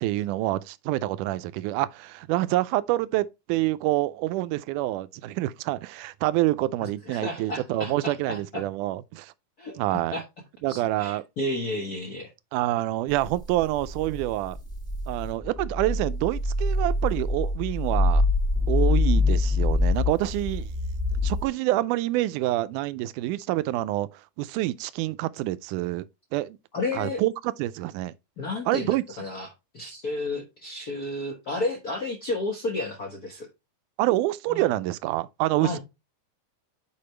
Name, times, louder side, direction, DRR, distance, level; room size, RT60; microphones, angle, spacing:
voice 1, 0.0-9.3 9.8-10.2 10.6-11.2 12.5-14.6 15.1-18.2 18.7-20.7 21.2-26.1 26.3-26.6 26.9-27.3 27.6-28.1 28.7-29.0 34.0-35.8, right 16 dB, 85° right, 2.1 m, -27 dB
voice 2, 6.8-8.6 9.6-10.2 10.7-12.3 26.7-27.2 28.4-29.5 29.7-33.5 34.5-34.6 35.6-35.8, left 2 dB, 85° left, 0.8 m, -32 dB
sound 1, 13.1-21.4, left 2 dB, ahead, 1.1 m, -25 dB
8.7 x 4.9 x 3.2 m
omnidirectional pair, 3.6 m